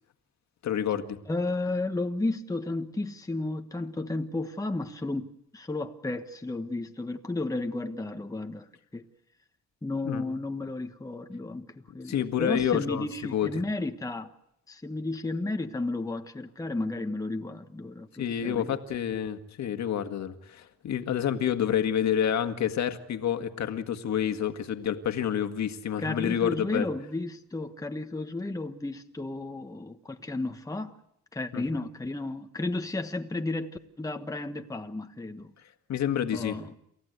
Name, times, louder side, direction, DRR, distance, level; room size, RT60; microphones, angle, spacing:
voice 1, 0.6-1.2 10.0-10.2 12.1-13.1 13.3-13.5 18.2-26.9 31.5-31.6 35.9-36.6, left 9 dB, 65° left, 1.9 m, -28 dB
voice 2, 1.3-8.7 8.9-9.0 9.8-14.3 14.7-18.7 26.0-31.0 31.3-35.5 36.3-36.7, left 2 dB, 10° left, 1.3 m, -33 dB
28.5 x 14.5 x 8.1 m
cardioid pair, 90°, 30 cm